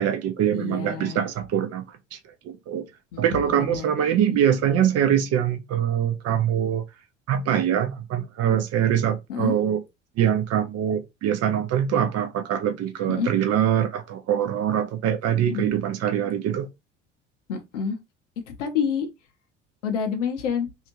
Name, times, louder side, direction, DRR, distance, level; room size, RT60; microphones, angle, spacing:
voice 1, 0.0-1.8 2.1-2.2 2.4-2.9 3.2-6.8 7.3-9.8 10.2-16.7, right 9 dB, 45° right, 0.7 m, -23 dB
voice 2, 0.5-1.2 3.1-3.9 4.3-4.4 9.3-9.5 13.1-13.3 15.5-15.7 17.5-18.0 18.6-19.1 19.8-20.7, left 7 dB, 75° left, 0.8 m, -28 dB
2.7 x 2.5 x 2.9 m
figure-of-eight pair, 60°, 36 cm